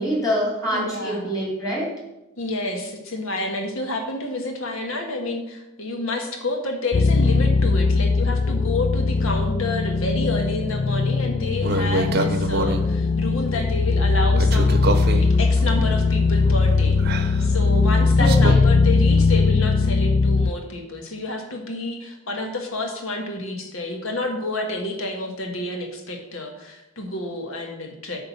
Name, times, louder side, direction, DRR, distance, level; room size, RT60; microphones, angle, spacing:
voice 1, 0.0-1.9 18.2-18.7, equal, 15° left, -4 dB, 3.3 m, -25 dB
voice 2, 0.7-1.3 2.4-28.2, left 2 dB, 70° left, 3 dB, 1.7 m, -29 dB
sound 1, 6.9-20.5, left 4 dB, 35° left, 0.4 m, -19 dB
sound 2, 11.6-12.9 14.4-18.6, right 2 dB, 50° right, 0.8 m, -27 dB
10.5 x 3.9 x 7.2 m, 0.95 s
head